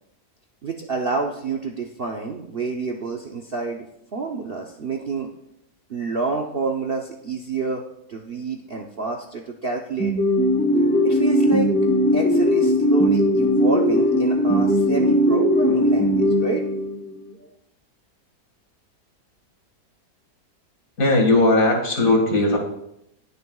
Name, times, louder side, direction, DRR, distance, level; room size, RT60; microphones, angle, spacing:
voice 1, 0.6-3.8 4.1-5.3 5.9-7.8 8.1-10.1 11.0-11.7 12.1-16.6, right 4 dB, 50° right, 1 dB, 0.8 m, -28 dB
sound 1, 10.0-17.2, equal, 10° left, 0.7 m, -19 dB
voice 2, 21.0-22.6, left 2 dB, 55° left, 2 dB, 2.3 m, -18 dB
20.0 x 6.7 x 2.3 m, 0.80 s
omnidirectional pair, 1.8 m